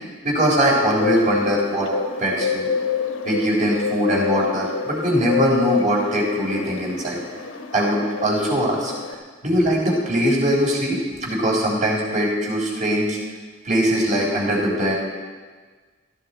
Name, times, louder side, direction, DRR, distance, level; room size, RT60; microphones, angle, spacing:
voice 1, 0.2-1.9 2.2-2.7 3.2-7.2 7.7-8.9 9.4-13.2 13.6-14.9, equal, 40° right, -3 dB, 3.9 m, -21 dB
Bird, 0.9-9.1, left 6 dB, 85° left, 1.3 m, -27 dB
16.0 x 14.0 x 4.4 m, 1.4 s
head